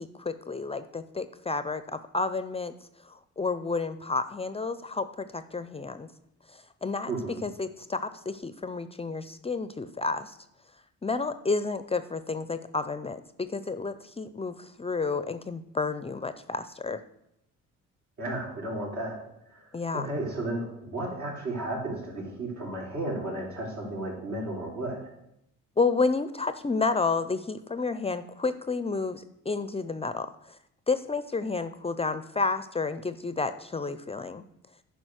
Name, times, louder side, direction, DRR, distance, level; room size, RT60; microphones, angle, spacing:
voice 1, 0.0-2.7 3.1-6.1 6.8-7.1 7.4-10.3 11.0-17.0 19.7-20.1 25.8-30.3 30.9-34.4, left 4 dB, 20° left, 12 dB, 0.4 m, -30 dB
voice 2, 7.1-7.4 18.2-19.2 19.5-19.7 19.9-25.1, right 1 dB, 70° right, -3 dB, 3.9 m, -33 dB
9.8 x 5.3 x 6.3 m, 0.81 s
cardioid pair, 90°, 30 cm